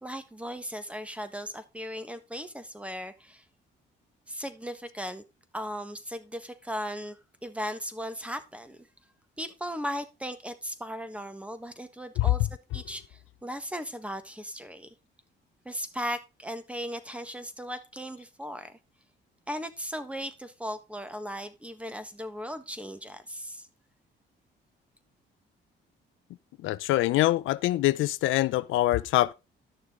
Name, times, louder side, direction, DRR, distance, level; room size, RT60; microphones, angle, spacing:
voice 1, 0.0-3.4 4.3-5.2 5.5-8.8 9.4-12.5 12.7-14.9 15.6-18.8 19.5-23.7, equal, 5° right, 1.4 m, -37 dB
voice 2, 26.6-29.3, left 16 dB, 85° left, 0.5 m, -24 dB
11.0 x 6.6 x 3.7 m
cardioid pair, 90°, 20 cm